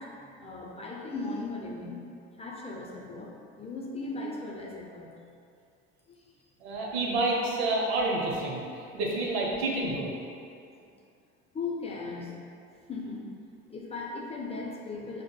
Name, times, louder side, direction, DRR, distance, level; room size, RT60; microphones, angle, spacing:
voice 1, 0.0-2.0 2.4-3.3 3.6-5.2 6.1-6.3 10.8-10.9 11.5-12.3 12.9-13.3 13.7-15.2, left 3 dB, 20° left, -3 dB, 0.5 m, -37 dB
voice 2, 6.6-8.6 8.9-10.1, right 2 dB, 90° right, -3 dB, 0.7 m, -28 dB
4.9 x 2.1 x 2.2 m, 2.4 s
supercardioid pair, 90°, 31 cm